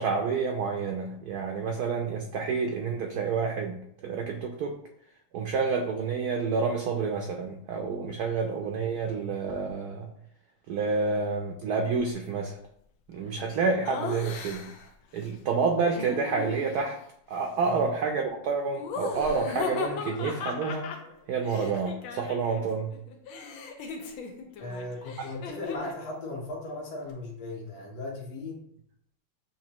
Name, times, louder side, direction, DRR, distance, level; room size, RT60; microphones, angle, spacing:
voice 1, 0.0-4.7 5.3-10.1 10.7-12.6 13.1-14.7 15.1-17.0 17.3-20.9 21.3-22.9, right 4 dB, 75° right, 2 dB, 0.9 m, -29 dB
Laughter, 13.9-14.9 15.9-17.0 18.8-22.6 22.9-26.0, left 5 dB, 90° left, 1.5 m, -37 dB
voice 2, 24.6-28.6, left 2 dB, 60° left, -3 dB, 1.6 m, -37 dB
6.9 x 2.6 x 2.9 m, 0.70 s
omnidirectional pair, 2.2 m